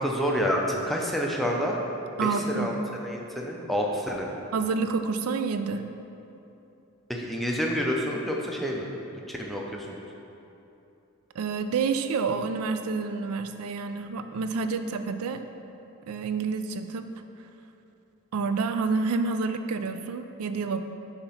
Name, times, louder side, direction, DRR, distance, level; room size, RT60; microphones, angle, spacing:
voice 1, 0.0-1.8 2.2-2.7 3.0-4.3 7.1-8.9 9.3-10.0, equal, ahead, -1 dB, 0.4 m, -28 dB
voice 2, 2.2-2.7 4.5-5.8 11.4-15.4 16.1-17.1 18.3-20.8, right 4 dB, 85° right, 9 dB, 0.4 m, -28 dB
6.8 x 2.9 x 5.6 m, 2.9 s
head